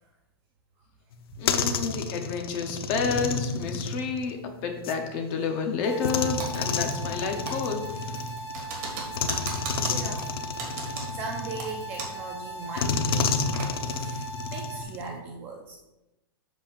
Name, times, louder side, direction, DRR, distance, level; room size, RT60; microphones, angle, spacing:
sound 1, 1.1-5.0 6.0-8.6 9.1-12.1 12.8-15.2, left 5 dB, 65° left, 0.7 m, -30 dB
voice 1, 1.4-4.4 4.6-7.9, left 5 dB, 25° left, 4 dB, 0.7 m, -30 dB
sound 2, 5.8-14.8, right 2 dB, 90° left, 1.1 m, -39 dB
Typing, 6.4-7.2 7.5-12.3 12.6-12.7 13.1-13.7, right 3 dB, 35° right, 1.5 m, -37 dB
voice 2, 7.9-8.3 8.9-9.6 9.9-10.5 11.1-13.4 13.9-15.8, right 3 dB, 15° right, 1 dB, 0.3 m, -40 dB
7.7 x 7.0 x 2.5 m, 0.97 s
supercardioid pair, 175°, 13 cm